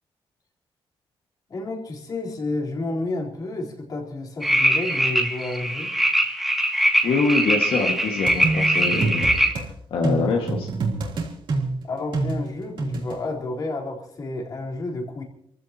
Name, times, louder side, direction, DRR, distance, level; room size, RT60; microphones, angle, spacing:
voice 1, 1.5-5.9 11.8-15.2, left 2 dB, 45° left, -1 dB, 4.1 m, -30 dB
sound 1, 4.4-9.5, equal, ahead, 2.6 m, -22 dB
voice 2, 7.0-9.3 9.9-10.7, left 4 dB, 75° left, 1 dB, 2.0 m, -24 dB
sound 2, 8.3-9.7 10.0-13.2, right 3 dB, 60° right, 3.4 m, -26 dB
28.0 x 15.5 x 3.0 m, 0.72 s
wide cardioid pair, 145°, 9 cm